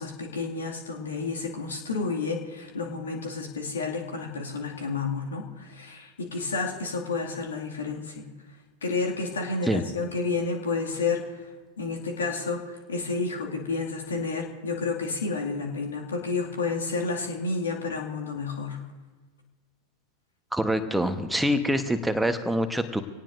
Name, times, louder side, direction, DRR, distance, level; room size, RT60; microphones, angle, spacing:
voice 1, 0.0-8.3 8.8-11.2 11.8-12.6 12.9-18.8, left 4 dB, 70° left, 0 dB, 2.3 m, -30 dB
voice 2, 20.5-23.0, equal, 5° right, 8 dB, 1.1 m, -25 dB
25.0 x 18.0 x 2.6 m, 1.3 s
figure-of-eight pair, 90°, 0 cm